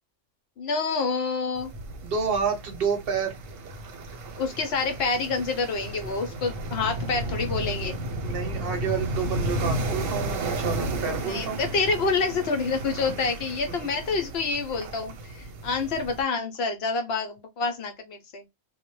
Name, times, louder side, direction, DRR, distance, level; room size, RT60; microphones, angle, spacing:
voice 1, 0.6-1.7 4.4-7.9 11.2-18.4, left 4 dB, 65° left, 0.7 m, -27 dB
sound 1, 1.5-16.2, right 1 dB, 85° right, 1.0 m, -33 dB
voice 2, 2.0-3.3 8.2-11.6, right 6 dB, 55° right, 0.8 m, -29 dB
2.2 x 2.0 x 3.0 m
omnidirectional pair, 1.3 m